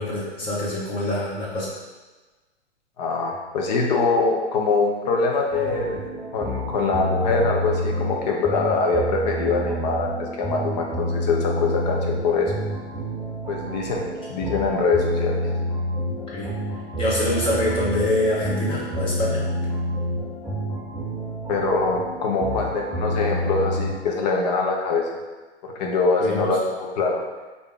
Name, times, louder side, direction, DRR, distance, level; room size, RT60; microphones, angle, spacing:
voice 1, 0.0-1.7 16.3-16.5 17.0-19.4 26.2-26.6, left 1 dB, 15° left, -6 dB, 1.0 m, -25 dB
voice 2, 3.0-6.0 6.3-12.5 13.5-15.4 21.5-25.1 25.6-27.2, left 4 dB, 40° left, 0 dB, 0.8 m, -23 dB
sound 1, 5.5-23.9, equal, 5° right, 0.3 m, -29 dB
5.0 x 2.8 x 3.4 m, 1.2 s
figure-of-eight pair, 115°, 34 cm